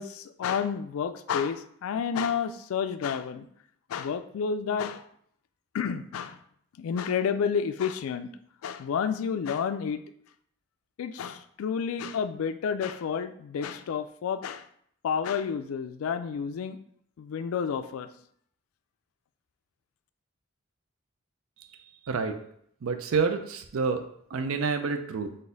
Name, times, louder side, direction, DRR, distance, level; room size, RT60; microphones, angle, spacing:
voice 1, 0.0-3.5 3.9-5.0 5.7-6.4 6.8-8.3 8.6-10.0 11.0-14.7 15.0-16.8 17.2-18.1, left 7 dB, 80° left, 11 dB, 0.3 m, -30 dB
voice 2, 22.1-22.4 22.8-24.0 24.3-25.3, right 5 dB, 80° right, 7 dB, 0.5 m, -28 dB
4.0 x 2.6 x 3.8 m, 0.67 s
head